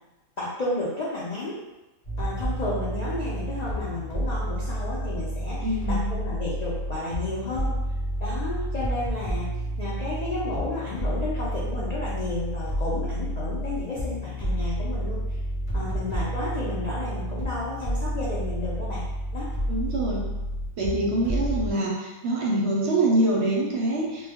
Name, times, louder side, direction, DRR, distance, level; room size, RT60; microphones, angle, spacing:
voice 1, 0.4-1.6 2.2-7.7 8.2-9.5 9.8-15.4 15.7-19.0 19.3-19.5, left 2 dB, 80° left, -7 dB, 0.3 m, -32 dB
sound 1, 2.0-21.7, right 1 dB, 30° left, 0.7 m, -30 dB
voice 2, 5.6-6.0 15.7-15.8 19.7-20.2 20.8-24.3, right 1 dB, 65° right, -3 dB, 0.7 m, -25 dB
2.2 x 2.0 x 3.4 m, 1.1 s
omnidirectional pair, 1.4 m